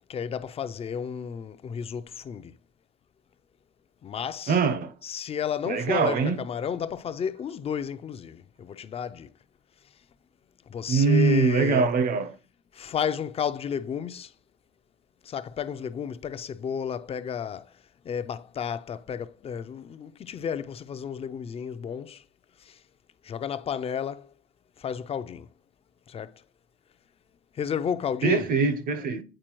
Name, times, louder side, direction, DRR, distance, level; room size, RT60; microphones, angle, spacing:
voice 1, 0.1-2.5 4.0-4.6 5.0-9.3 10.7-11.9 12.7-14.3 15.3-17.7 18.0-22.2 22.7-22.8 23.2-24.3 24.8-25.5 26.1-26.3 27.6-28.5, left 7 dB, 35° left, 0.4 m, -32 dB
voice 2, 4.5-4.9 5.7-6.4 10.9-12.3 28.2-29.2, right 5 dB, 60° right, 0.8 m, -23 dB
8.9 x 4.3 x 3.0 m
cardioid pair, 110°, 17 cm